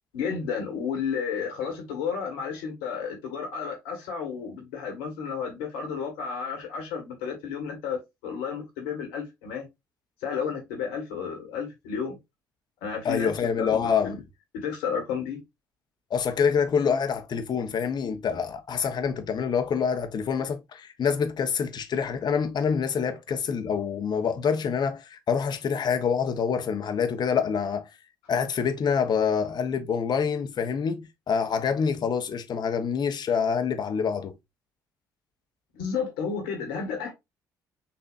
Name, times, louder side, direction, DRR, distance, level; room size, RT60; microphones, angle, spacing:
voice 1, 0.1-9.7 10.2-12.2 12.8-13.3 13.6-14.2 14.5-15.4 35.7-37.1, left 6 dB, 80° left, 1.9 m, -32 dB
voice 2, 13.0-14.2 16.1-27.8 28.3-34.3, left 6 dB, 50° left, 1.1 m, -26 dB
7.0 x 2.8 x 2.6 m
hypercardioid pair, 55°, 9 cm